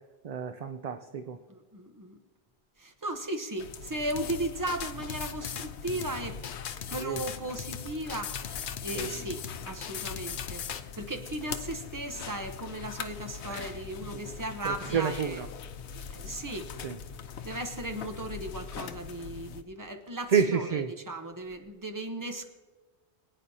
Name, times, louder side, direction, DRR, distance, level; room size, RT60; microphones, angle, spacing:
voice 1, 0.2-1.4 7.0-7.2 8.9-9.1 13.5-13.7 14.6-15.5 16.8-17.0 20.3-20.9, right 6 dB, 50° right, 8 dB, 0.5 m, -29 dB
voice 2, 1.5-2.2 2.8-6.4 6.9-15.4 15.9-16.7 17.4-22.5, right 1 dB, 20° right, 6 dB, 0.8 m, -36 dB
sound 1, 3.6-19.6, left 7 dB, 85° left, 1.0 m, -42 dB
sound 2, 4.2-10.8, left 8 dB, 60° left, 0.7 m, -38 dB
23.5 x 9.2 x 2.8 m, 1.3 s
omnidirectional pair, 1.1 m